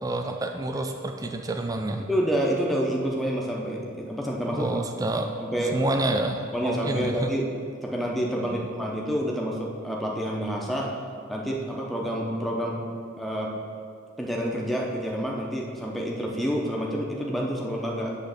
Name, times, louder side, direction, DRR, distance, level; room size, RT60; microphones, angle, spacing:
voice 1, 0.0-2.0 4.5-5.3 5.7-7.3 8.4-8.6, right 2 dB, 15° right, 4 dB, 0.4 m, -28 dB
voice 2, 2.1-4.8 5.4-5.8 6.5-7.4 7.8-10.9 11.3-12.8 13.2-13.5 14.2-18.1, equal, ahead, -2 dB, 0.7 m, -28 dB
8.2 x 3.2 x 6.5 m, 2.2 s
head